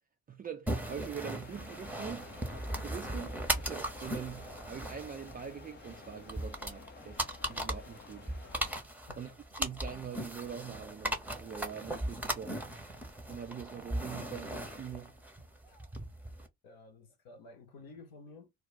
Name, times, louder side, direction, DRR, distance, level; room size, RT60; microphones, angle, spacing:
voice 1, 0.3-2.3 2.8-7.2 7.5-8.4 9.2-9.3 9.6-12.7 13.3-15.2, right 7 dB, 25° right, 0.4 m, -43 dB
sound 1, 0.7-16.5, right 1 dB, 5° right, 0.8 m, -38 dB
sound 2, 1.4-8.8, left 6 dB, 25° left, 0.5 m, -53 dB
voice 2, 9.1-9.4 15.7-15.8 16.6-18.5, left 3 dB, 60° left, 0.9 m, -53 dB
2.3 x 2.2 x 3.8 m
hypercardioid pair, 50°, 40 cm